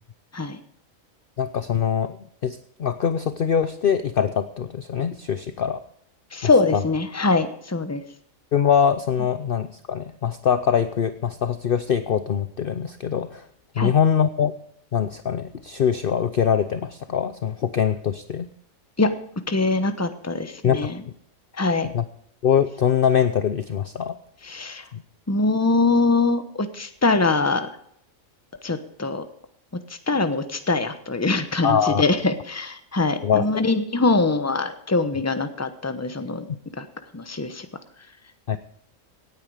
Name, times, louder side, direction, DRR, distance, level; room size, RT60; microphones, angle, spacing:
voice 1, 1.4-2.2 2.4-5.8 6.7-6.8 8.5-13.4 13.8-14.5 14.9-18.5 20.6-20.9 21.9-22.0 22.4-24.2 24.9-25.0 31.6-32.0 33.2-33.6 38.5-38.6, left 8 dB, 50° left, 11 dB, 0.8 m, -23 dB
voice 2, 6.3-8.0 13.8-13.9 19.0-19.1 19.5-21.0 21.6-21.9 24.4-24.8 25.3-27.7 28.6-29.2 30.1-36.4 36.8-36.9 37.1-37.7, left 3 dB, 15° left, 10 dB, 1.0 m, -23 dB
17.5 x 9.5 x 5.0 m, 0.68 s
omnidirectional pair, 1.4 m